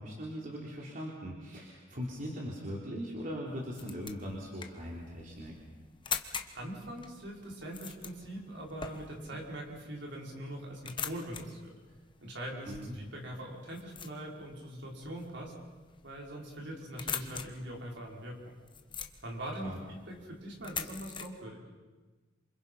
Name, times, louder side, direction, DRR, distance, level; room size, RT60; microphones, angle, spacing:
voice 1, 0.0-5.6 12.6-13.0 19.6-19.8, equal, 45° right, -3 dB, 3.8 m, -40 dB
sound 1, 3.5-21.3, left 6 dB, 25° left, 1.3 m, -44 dB
voice 2, 6.5-11.7 12.2-15.5 16.0-18.4 19.2-21.6, right 1 dB, 65° right, -1 dB, 5.6 m, -42 dB
28.5 x 26.5 x 5.7 m, 1.3 s
head